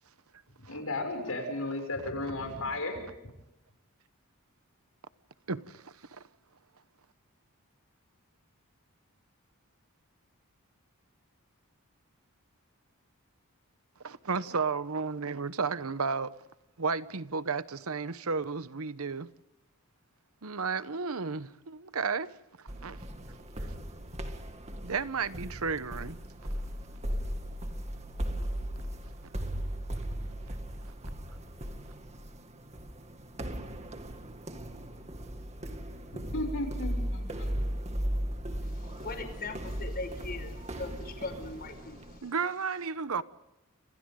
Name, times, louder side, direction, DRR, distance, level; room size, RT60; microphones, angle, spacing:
voice 1, 0.7-3.0 36.3-37.6, left 2 dB, 70° left, 6.7 m, -34 dB
voice 2, 5.5-6.2 14.0-16.3 16.8-19.3 20.4-22.3 22.6-23.0 24.8-26.2 42.2-43.2, right 5 dB, 70° right, 1.0 m, -33 dB
sound 1, 22.7-42.2, equal, 30° right, 2.2 m, -37 dB
voice 3, 38.6-42.3, left 3 dB, 45° left, 5.3 m, -40 dB
29.5 x 26.5 x 3.8 m
head